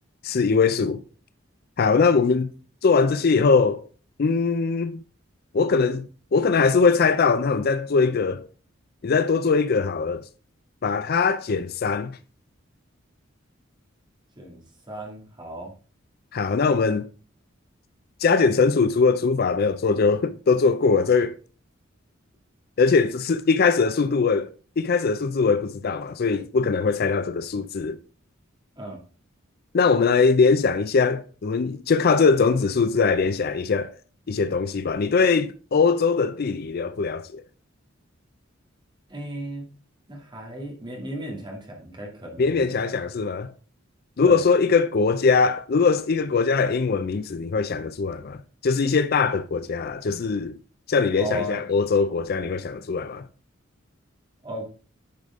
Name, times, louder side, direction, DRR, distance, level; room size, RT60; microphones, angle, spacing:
voice 1, 0.2-1.0 1.8-2.5 2.8-3.8 4.2-5.0 5.5-8.5 9.0-10.2 10.8-12.2 16.3-17.1 18.2-21.3 22.8-24.5 24.8-28.0 29.7-33.9 34.3-37.4 42.4-43.5 44.2-50.6 50.9-53.3, left 4 dB, 50° left, 0.4 m, -21 dB
voice 2, 14.4-15.7 28.8-29.0 39.1-39.7 40.1-42.9 44.2-44.4 51.2-51.6 54.4-54.7, equal, 25° right, 2.3 m, -35 dB
10.5 x 5.0 x 3.6 m
head